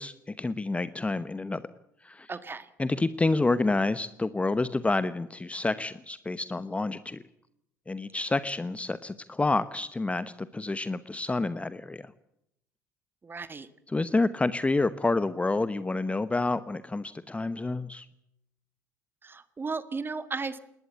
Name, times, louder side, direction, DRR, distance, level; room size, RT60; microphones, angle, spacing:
voice 1, 0.0-1.6 2.0-2.3 2.8-7.2 7.9-12.1 13.9-18.1, left 3 dB, 15° left, 15 dB, 0.9 m, -28 dB
voice 2, 2.3-2.6 13.2-13.7 19.2-20.6, right 4 dB, 25° right, 13 dB, 1.6 m, -35 dB
20.5 x 19.0 x 8.6 m, 0.77 s
figure-of-eight pair, 60°, 9 cm